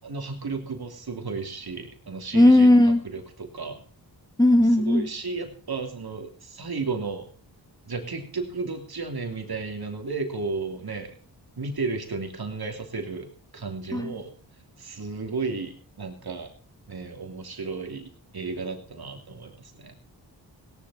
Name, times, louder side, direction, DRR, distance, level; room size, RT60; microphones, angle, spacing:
voice 1, 0.0-3.8 4.7-7.3 7.9-11.1 11.6-14.4 14.8-16.5 16.9-19.9, right 4 dB, 60° right, 4 dB, 3.0 m, -33 dB
voice 2, 2.3-3.0 4.4-5.1 13.9-14.1, left 1 dB, 10° left, 6 dB, 1.9 m, -17 dB
17.0 x 11.0 x 4.2 m, 0.40 s
cardioid pair, 65°, 43 cm